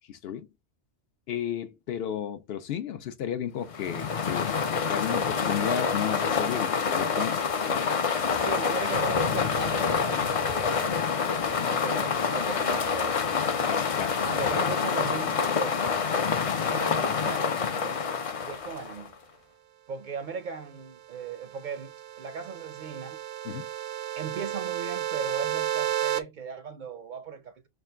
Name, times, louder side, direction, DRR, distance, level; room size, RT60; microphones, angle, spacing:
voice 1, 0.1-0.5 1.3-7.4 7.7-8.3 12.0-12.1 13.7-14.2 23.4-23.7, left 9 dB, 70° left, 0.8 m, -33 dB
sound 1, 3.7-19.1, left 6 dB, 45° left, 0.5 m, -27 dB
voice 2, 8.4-11.0 11.3-13.3 14.2-15.8 16.7-18.0 18.4-19.2 19.9-23.2 24.2-27.7, right 6 dB, 60° right, 0.6 m, -37 dB
sound 2, 21.3-26.2, right 12 dB, 85° right, 0.8 m, -32 dB
4.4 x 2.4 x 3.3 m
omnidirectional pair, 1.1 m